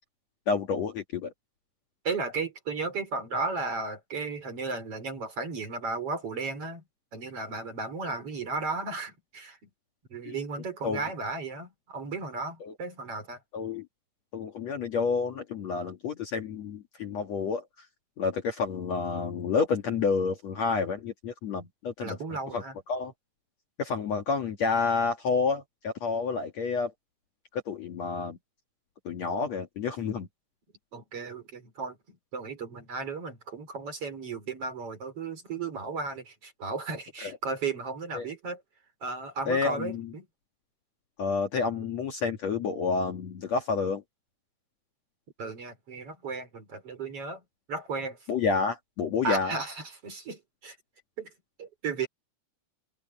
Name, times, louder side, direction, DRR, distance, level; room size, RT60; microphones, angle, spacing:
voice 1, 0.5-1.3 10.3-10.4 10.8-11.0 12.6-12.7 13.5-13.9 14.3-17.6 18.2-22.2 22.5-22.6 22.9-23.1 23.8-26.9 27.5-28.4 29.1-30.3 38.1-38.3 39.5-40.1 41.2-44.0 48.3-49.5, left 5 dB, 50° left, 2.5 m, -29 dB
voice 2, 2.0-6.8 7.1-9.6 10.1-13.4 22.0-22.8 30.9-32.0 32.3-38.6 39.0-40.3 45.4-47.4 47.7-48.2 49.2-50.8 51.2-51.3 51.6-52.1, right 4 dB, 40° right, 4.8 m, -34 dB
omnidirectional pair, 4.4 m